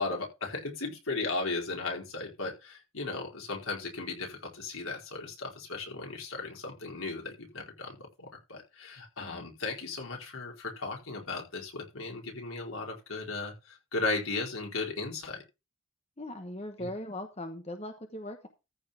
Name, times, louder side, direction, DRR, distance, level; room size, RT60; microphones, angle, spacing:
voice 1, 0.0-15.4 16.8-16.9, left 3 dB, 90° left, 0 dB, 4.5 m, -36 dB
voice 2, 16.2-18.5, left 1 dB, 30° left, 6 dB, 1.1 m, -39 dB
14.0 x 4.7 x 5.7 m, 0.27 s
head